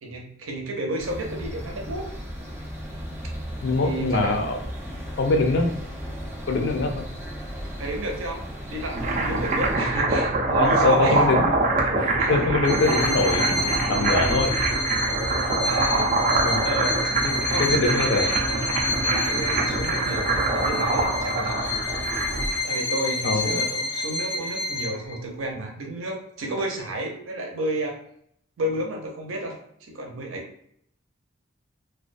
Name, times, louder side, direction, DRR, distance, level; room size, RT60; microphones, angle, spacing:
voice 1, 0.0-2.1 3.8-4.4 7.8-8.4 8.7-11.3 12.2-12.4 15.6-16.2 16.6-17.0 17.5-18.7 19.0-21.8 22.6-28.0 28.6-29.6 29.9-30.7, right 1 dB, 80° right, 1 dB, 0.6 m, -31 dB
sound 1, 1.0-9.7, equal, 15° right, 0.7 m, -36 dB
voice 2, 3.6-4.6 5.2-5.8 6.5-7.0 10.6-11.6 11.8-14.5 16.4-16.6 17.2-17.3 17.6-18.3 23.2-23.6, left 3 dB, 65° left, 3 dB, 0.4 m, -23 dB
sound 2, 8.7-22.6, right 2 dB, 40° right, 0.4 m, -24 dB
Bowed string instrument, 12.6-25.1, left 2 dB, 85° left, 0.8 m, -29 dB
2.3 x 2.2 x 2.5 m, 0.69 s
head